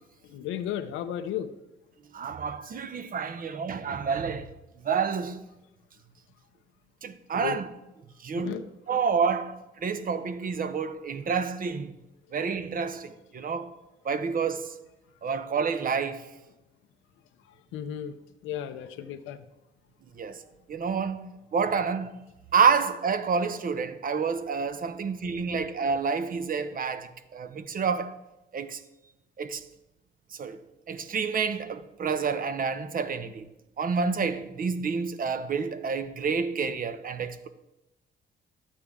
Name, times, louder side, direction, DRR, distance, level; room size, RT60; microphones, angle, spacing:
voice 1, 0.3-1.5 7.3-7.6 8.3-8.6 17.7-18.2 18.4-19.4 25.5-25.6, left 10 dB, 90° left, 0.6 m, -34 dB
voice 2, 2.1-4.5 4.8-5.5 7.0-7.7 8.2-11.9 12.3-13.7 14.0-14.7 15.2-16.3 20.2-20.4 20.7-21.2 21.5-22.2 22.5-28.2 28.5-28.8 29.4-29.6 30.4-33.5 33.8-37.5, right 5 dB, 45° right, 0.8 m, -29 dB
11.5 x 8.5 x 3.6 m
cardioid pair, 90°, 20 cm